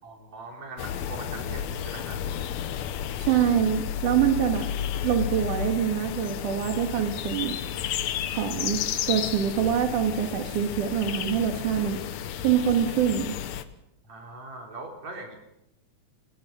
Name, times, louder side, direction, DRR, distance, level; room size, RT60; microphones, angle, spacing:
voice 1, 0.0-2.2 14.0-15.4, right 3 dB, 60° right, 2 dB, 4.6 m, -41 dB
sound 1, 0.8-13.6, left 9 dB, 70° left, 2.1 m, -32 dB
voice 2, 3.2-4.7 5.0-7.6 8.3-8.8 9.1-12.0 12.4-13.3, right 9 dB, 75° right, 4 dB, 3.2 m, -25 dB
20.5 x 19.5 x 6.7 m, 0.85 s
omnidirectional pair, 3.6 m